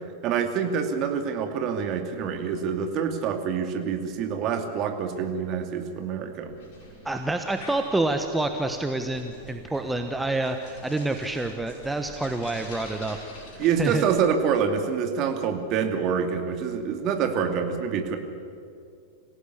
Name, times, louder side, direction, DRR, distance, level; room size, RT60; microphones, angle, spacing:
voice 1, 0.2-6.5 13.6-18.2, right 7 dB, 40° right, 5 dB, 2.6 m, -26 dB
sound 1, 6.4-14.3, left 2 dB, 50° left, 5.8 m, -46 dB
voice 2, 7.0-13.2 13.5-14.0, right 2 dB, 5° right, 6 dB, 1.2 m, -28 dB
25.5 x 16.5 x 8.4 m, 2.4 s
figure-of-eight pair, 90°, 0 cm